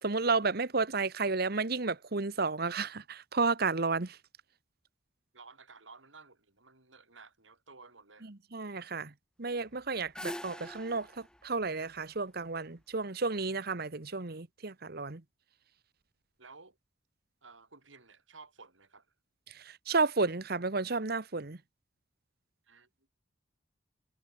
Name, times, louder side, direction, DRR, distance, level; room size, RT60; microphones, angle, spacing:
voice 1, 0.0-4.2 8.3-9.1 9.4-15.2 19.5-21.6, right 4 dB, 55° right, 1.3 m, -32 dB
voice 2, 5.3-8.3 16.4-16.8 17.4-19.1 22.7-22.9, right 4 dB, 85° right, 5.5 m, -54 dB
sound 1, 9.7-12.8, left 1 dB, 5° left, 1.2 m, -45 dB
head